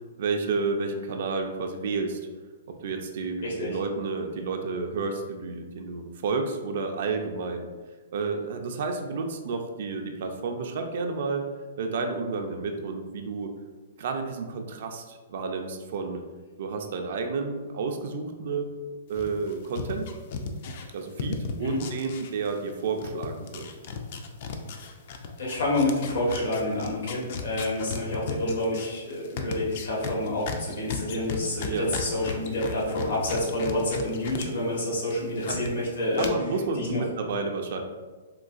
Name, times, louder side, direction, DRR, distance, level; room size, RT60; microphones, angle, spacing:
voice 1, 0.2-2.2 2.7-7.7 8.1-11.5 11.8-13.5 14.0-16.2 16.6-18.7 19.1-20.1 20.9-23.7 31.7-31.9 35.3-35.6 36.2-37.8, right 4 dB, 60° right, 4 dB, 0.3 m, -31 dB
voice 2, 3.4-3.8 21.6-21.8 25.4-36.3 36.8-37.0, left 1 dB, 80° left, -4 dB, 1.2 m, -28 dB
sound 1, 19.1-22.7 23.0-34.5 34.8-35.7 36.2-36.3, left 5 dB, 50° left, 0.3 m, -35 dB
3.7 x 2.3 x 2.4 m, 1.4 s
hypercardioid pair, 155°, 0 cm